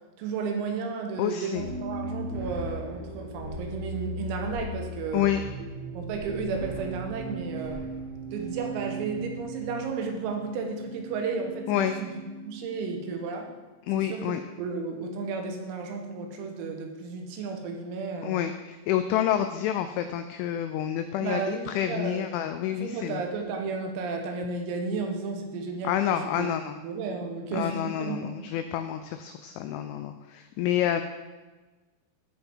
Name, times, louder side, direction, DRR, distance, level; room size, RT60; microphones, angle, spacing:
voice 1, 0.2-5.3 6.0-7.9 8.3-12.2 12.4-13.5 14.0-18.5 21.2-22.3 22.7-26.5 26.8-27.7 28.0-28.3, right 4 dB, 85° right, 3 dB, 3.9 m, -33 dB
voice 2, 1.2-1.6 5.1-5.4 11.7-12.0 13.9-14.4 18.2-23.2 25.8-26.8 27.5-31.0, left 11 dB, 90° left, 8 dB, 2.7 m, -28 dB
sound 1, 1.5-13.1, right 2 dB, 50° right, 1.5 m, -38 dB
15.0 x 5.3 x 4.6 m, 1.2 s
omnidirectional pair, 6.0 m